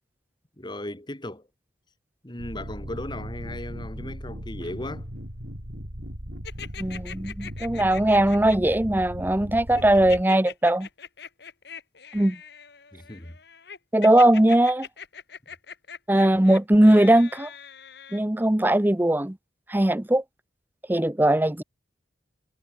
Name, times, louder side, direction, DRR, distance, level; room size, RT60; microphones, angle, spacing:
voice 1, 0.6-1.5 2.2-5.1 12.9-13.3, left 1 dB, 25° left, 2.2 m, -36 dB
sound 1, 2.4-10.2, equal, 60° right, 6.8 m, -37 dB
sound 2, 6.4-8.8 9.8-18.2, left 7 dB, 60° left, 2.3 m, -42 dB
voice 2, 6.8-10.9 12.1-12.4 13.9-14.9 16.1-17.5 18.1-19.4 19.7-20.2 20.9-21.6, right 1 dB, 10° right, 0.6 m, -20 dB
head